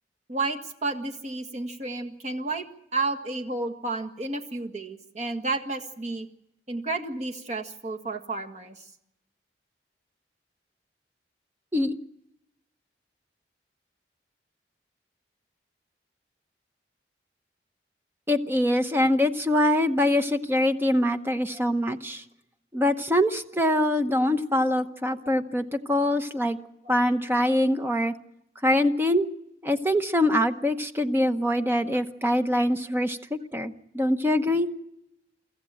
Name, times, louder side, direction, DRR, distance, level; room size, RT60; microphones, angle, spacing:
voice 1, 0.3-2.7 2.9-6.3 6.7-8.8 24.7-24.8 25.1-25.3 26.8-27.0 27.4-27.6, right 3 dB, 40° right, 3 dB, 1.7 m, -31 dB
voice 2, 18.3-22.2 22.7-26.6 26.9-28.1 28.6-29.3 29.6-33.2 33.5-34.7, left 1 dB, 10° right, 8 dB, 0.9 m, -24 dB
24.5 x 14.5 x 8.8 m, 0.85 s
head